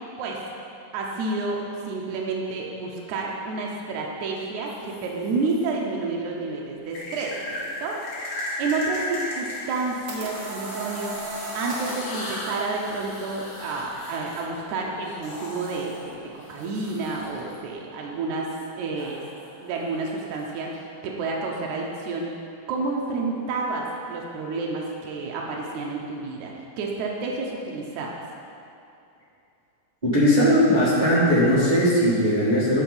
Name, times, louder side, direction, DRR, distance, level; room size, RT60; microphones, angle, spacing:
voice 1, 0.9-8.0 8.6-11.2 11.5-19.2 19.6-20.7 21.0-22.3 22.7-28.2, right 3 dB, 70° right, -2 dB, 2.1 m, -30 dB
sound 1, 4.7-5.6 6.9-17.6 19.0-20.8, left 1 dB, 60° left, 3.2 m, -37 dB
sound 2, 9.6-12.2, right 1 dB, 55° right, 1.4 m, -34 dB
voice 2, 30.0-32.8, equal, 30° right, -10 dB, 0.8 m, -19 dB
8.7 x 5.7 x 5.4 m, 2.6 s
omnidirectional pair, 3.8 m